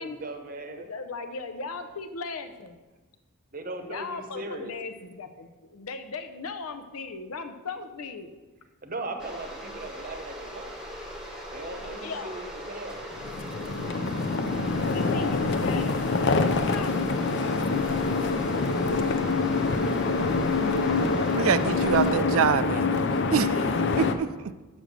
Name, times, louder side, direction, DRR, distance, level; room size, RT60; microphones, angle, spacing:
voice 1, 0.0-0.9 3.5-4.7 8.8-10.8 11.5-13.0, right 2 dB, 40° right, 6 dB, 0.8 m, -38 dB
voice 2, 0.7-2.8 3.9-8.4 11.6-12.4 13.5-14.0 14.9-17.0, left 4 dB, 85° left, 8 dB, 0.7 m, -38 dB
kettle G monaural kitchen, 9.2-22.2, equal, 5° right, 0.9 m, -39 dB
sound 1, 13.2-24.1, left 3 dB, 55° left, 0.5 m, -25 dB
voice 3, 21.3-23.0 23.3-23.6 24.0-24.3, right 7 dB, 70° right, 14 dB, 0.3 m, -25 dB
6.4 x 6.2 x 6.6 m, 1.2 s
head